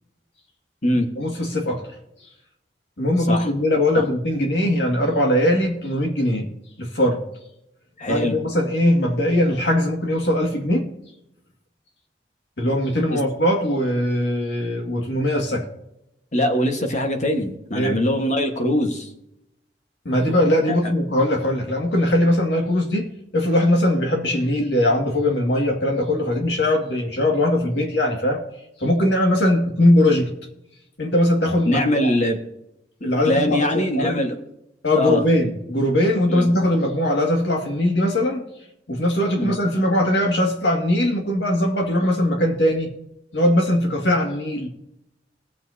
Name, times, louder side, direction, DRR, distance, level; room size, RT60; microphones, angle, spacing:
voice 1, 1.2-1.8 3.0-6.5 6.8-7.2 8.1-10.9 12.6-15.7 17.7-18.0 20.1-28.4 28.8-30.3 31.0-32.1 33.0-34.2 34.8-38.4 38.9-42.9 43.3-44.7, left 1 dB, 75° left, 1 dB, 2.1 m, -20 dB
voice 2, 8.0-8.4 13.1-13.2 16.3-19.1 20.7-20.8 31.7-32.4 33.0-34.4 34.9-35.2 36.3-36.5 39.3-39.5, left 1 dB, 45° left, 4 dB, 1.5 m, -22 dB
20.0 x 7.4 x 2.8 m, 0.83 s
head